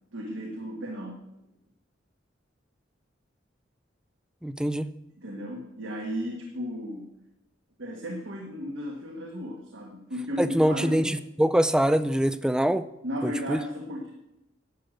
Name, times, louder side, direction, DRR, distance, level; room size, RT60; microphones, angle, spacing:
voice 1, 0.1-1.2 5.2-7.1 7.8-11.1 13.0-14.1, equal, 75° right, 0 dB, 1.7 m, -34 dB
voice 2, 4.4-4.9 10.4-12.8 13.2-13.6, equal, 5° right, 13 dB, 0.4 m, -24 dB
11.5 x 7.8 x 6.5 m, 0.90 s
head